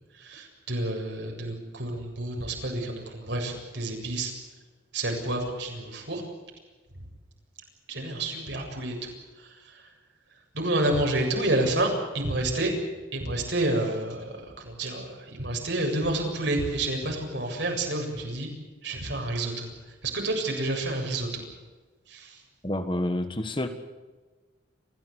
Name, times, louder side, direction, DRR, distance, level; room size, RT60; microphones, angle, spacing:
voice 1, 0.1-4.3 4.9-6.2 7.0-7.1 7.9-9.1 9.4-9.8 10.5-12.7 13.1-18.5 18.8-19.7 20.0-21.4 22.1-22.4, right 1 dB, 65° right, 2 dB, 7.5 m, -29 dB
voice 2, 22.6-23.7, left 1 dB, 25° left, 8 dB, 1.7 m, -28 dB
28.5 x 16.0 x 8.2 m, 1.3 s
head